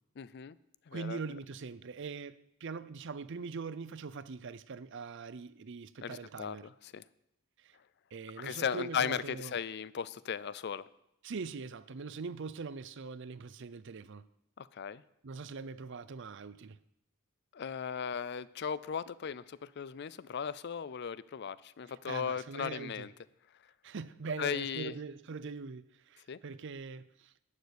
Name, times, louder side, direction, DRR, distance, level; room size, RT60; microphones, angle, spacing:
voice 1, 0.2-0.6 0.9-1.2 6.0-7.0 8.4-10.9 14.6-15.0 17.5-23.1 24.4-25.0 26.3-26.4, left 7 dB, 50° left, 0.4 m, -37 dB
voice 2, 0.9-6.7 7.6-7.8 8.1-9.6 11.2-14.2 15.2-16.8 21.9-23.1 23.8-27.3, right 4 dB, 55° right, 0.5 m, -42 dB
11.5 x 6.7 x 8.3 m
head